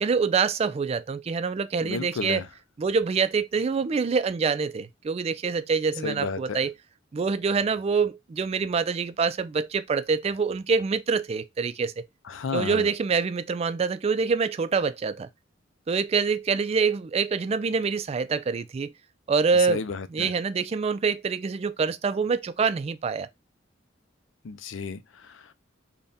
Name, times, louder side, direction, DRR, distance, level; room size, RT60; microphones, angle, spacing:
voice 1, 0.0-2.4 2.8-6.7 7.1-12.1 12.5-15.3 15.9-18.9 19.3-19.8 20.1-23.3, right 5 dB, 30° right, 0.3 m, -25 dB
voice 2, 1.8-2.5 6.0-6.6 12.3-12.9 19.7-20.3 24.4-25.5, left 4 dB, 90° left, 0.5 m, -33 dB
3.5 x 2.2 x 4.0 m
head